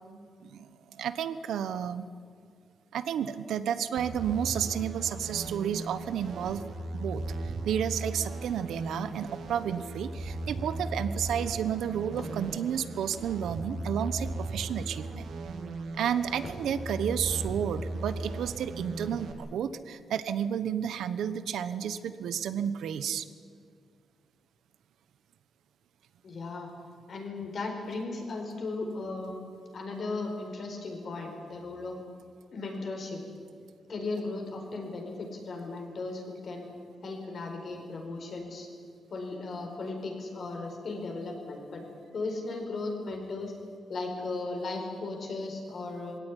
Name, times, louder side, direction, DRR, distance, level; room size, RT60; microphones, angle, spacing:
voice 1, 0.4-2.1 2.9-6.6 6.9-15.3 16.0-23.3, right 9 dB, 90° right, 13 dB, 1.1 m, -31 dB
sound 1, 4.0-19.3, right 2 dB, 65° right, 2.3 m, -37 dB
voice 2, 26.2-26.7 27.1-29.3 29.7-32.0 32.5-33.2 33.9-36.7 37.0-38.7 39.1-41.8 42.1-43.5 43.9-46.2, left 3 dB, 45° left, 2 dB, 4.7 m, -36 dB
21.5 x 17.5 x 10.0 m, 2.1 s
wide cardioid pair, 145°, 0 cm